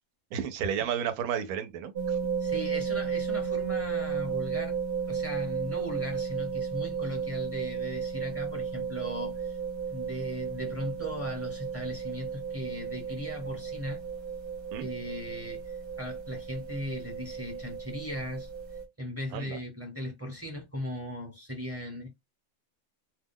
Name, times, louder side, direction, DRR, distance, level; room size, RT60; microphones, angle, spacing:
voice 1, 0.3-2.2 14.7-14.9 19.3-19.6, right 8 dB, 85° right, 1.0 m, -32 dB
sound 1, 2.0-18.8, right 6 dB, 50° right, 0.9 m, -34 dB
voice 2, 2.4-4.8 5.1-9.6 9.9-14.0 14.8-18.5 19.0-22.1, equal, 15° right, 0.7 m, -38 dB
2.4 x 2.2 x 3.5 m
omnidirectional pair, 1.5 m